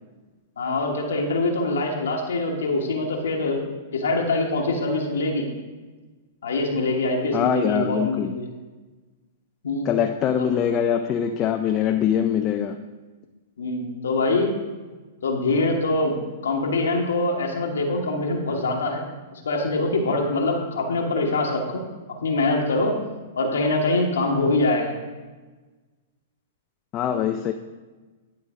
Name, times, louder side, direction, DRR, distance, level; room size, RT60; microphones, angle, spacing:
voice 1, 0.6-3.6 3.9-5.5 6.4-8.5 9.6-9.9 13.6-14.5 15.2-16.2 16.4-21.8 22.2-22.9 23.4-25.0, left 2 dB, 75° left, 0 dB, 1.2 m, -24 dB
voice 2, 7.3-8.4 9.8-12.8 26.9-27.5, left 9 dB, 35° left, 5 dB, 0.4 m, -23 dB
10.5 x 3.8 x 5.0 m, 1.3 s
figure-of-eight pair, 105°, 0 cm